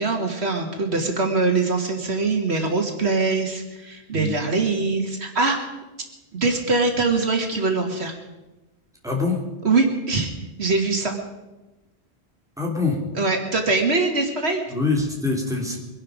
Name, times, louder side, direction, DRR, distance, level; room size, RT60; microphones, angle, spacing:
voice 1, 0.0-5.6 6.3-8.1 9.6-10.3 10.6-11.1 13.2-14.6, right 3 dB, 75° right, 3 dB, 2.2 m, -22 dB
voice 2, 9.0-9.4 12.6-13.0 14.7-15.8, left 3 dB, 5° right, -1 dB, 3.0 m, -24 dB
23.0 x 11.5 x 5.1 m, 1.1 s
omnidirectional pair, 1.1 m